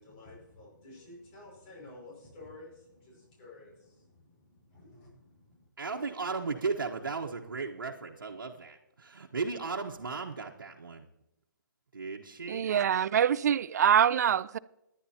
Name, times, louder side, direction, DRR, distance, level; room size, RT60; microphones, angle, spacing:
voice 1, 0.0-5.6, left 2 dB, 30° left, 5.7 m, -52 dB
voice 2, 5.8-11.0 11.9-12.7, right 4 dB, 90° right, 1.3 m, -36 dB
voice 3, 12.5-14.6, right 9 dB, 55° right, 0.4 m, -25 dB
20.5 x 10.5 x 2.9 m
hypercardioid pair, 155°, 11 cm